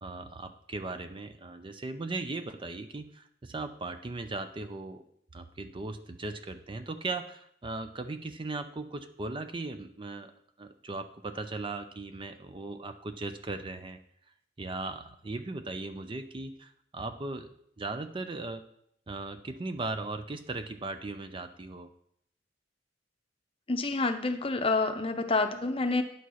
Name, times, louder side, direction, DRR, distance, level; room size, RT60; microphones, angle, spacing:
voice 1, 0.0-5.0 5.3-10.3 10.6-14.0 14.6-17.5 17.8-18.6 19.1-21.9, right 3 dB, 30° right, 8 dB, 0.5 m, -38 dB
voice 2, 23.7-26.0, left 3 dB, 30° left, 7 dB, 0.7 m, -28 dB
9.3 x 4.2 x 6.3 m, 0.70 s
head